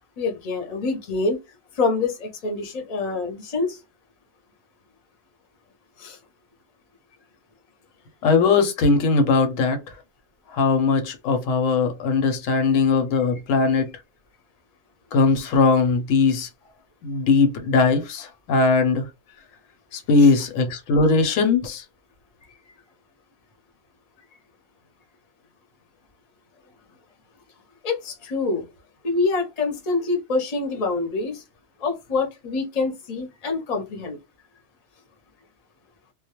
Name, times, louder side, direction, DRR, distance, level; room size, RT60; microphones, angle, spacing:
voice 1, 0.2-1.4 1.7-3.8 6.0-6.2 20.2-20.3 27.8-28.7 29.0-31.4 31.8-34.2, left 3 dB, 40° left, 0.6 m, -26 dB
voice 2, 8.2-9.8 10.5-13.9 15.1-16.5 17.0-19.1 19.9-21.8, left 4 dB, 80° left, 1.0 m, -19 dB
2.2 x 2.0 x 2.8 m
omnidirectional pair, 1.3 m